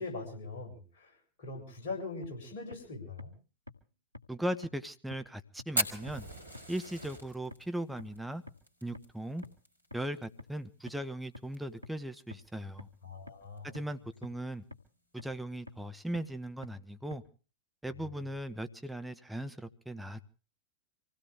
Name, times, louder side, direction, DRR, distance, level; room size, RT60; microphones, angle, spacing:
voice 1, 0.0-3.3 13.0-13.9, left 3 dB, 55° left, 2 dB, 7.4 m, -42 dB
sound 1, 2.2-2.3 2.7-2.8 3.2-3.3 3.7-3.8 4.1-4.2 4.6-4.7 5.1-5.2 5.6-5.7 6.1-6.2 6.5-6.6 7.0-7.1 7.5-7.6 8.0-8.1 8.5-8.6 8.9-9.0 9.4-9.5 9.9-10.0 10.4-10.5 10.9-11.0 11.3-11.4 11.8-11.9 12.3-12.4 12.8-12.9 13.3-13.4 13.7-13.8 14.2-14.3 14.7-14.8 15.2-15.3 15.7-15.8 16.1-16.2 16.6-16.7 17.1-17.2, left 2 dB, 85° left, 1.4 m, -46 dB
voice 2, 4.3-6.3 6.7-8.4 8.8-9.4 9.9-12.9 13.7-14.6 15.1-17.2 17.8-20.2, right 1 dB, 5° right, 9 dB, 1.0 m, -38 dB
Fire, 5.7-10.3 10.5-10.6 10.9-11.0 11.3-11.8 12.3-12.4 13.4-13.6, right 1 dB, 80° right, 2.5 m, -37 dB
25.0 x 16.5 x 3.5 m, 0.35 s
figure-of-eight pair, 90°, 0 cm